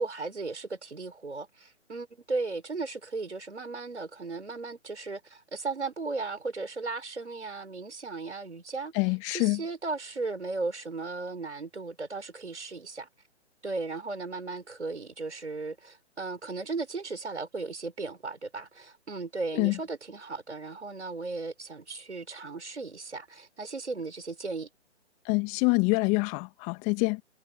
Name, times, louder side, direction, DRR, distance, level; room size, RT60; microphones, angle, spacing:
voice 1, 0.0-8.9 9.3-13.1 13.6-24.7, right 3 dB, 75° right, 4.4 m, -36 dB
voice 2, 8.9-9.6 19.5-19.8 25.3-27.2, left 30 dB, 20° left, 2.1 m, -26 dB
figure-of-eight pair, 135°, 35 cm